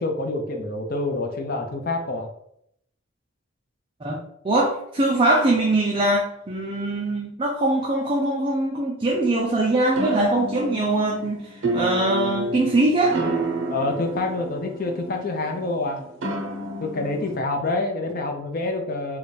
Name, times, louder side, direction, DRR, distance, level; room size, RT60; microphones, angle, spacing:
voice 1, 0.0-2.3 13.7-16.0 16.8-19.2, left 2 dB, 45° left, 3 dB, 0.6 m, -27 dB
voice 2, 4.4-13.2 17.2-17.3, right 2 dB, 25° right, -2 dB, 0.4 m, -22 dB
sound 1, 10.0-17.4, right 2 dB, 65° right, 0.7 m, -30 dB
3.4 x 2.2 x 4.0 m, 0.73 s
head